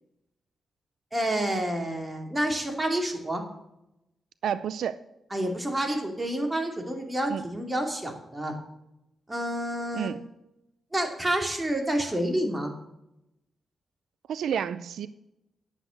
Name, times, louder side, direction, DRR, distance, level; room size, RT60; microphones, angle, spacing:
voice 1, 1.1-3.4 5.3-8.5 9.3-10.1 10.9-12.7, right 1 dB, 15° right, 2 dB, 2.6 m, -29 dB
voice 2, 4.4-5.0 7.3-7.4 9.9-10.2 14.3-15.1, right 8 dB, 85° right, 14 dB, 0.4 m, -30 dB
10.0 x 8.0 x 6.4 m, 0.85 s
cardioid pair, 100°, 0 cm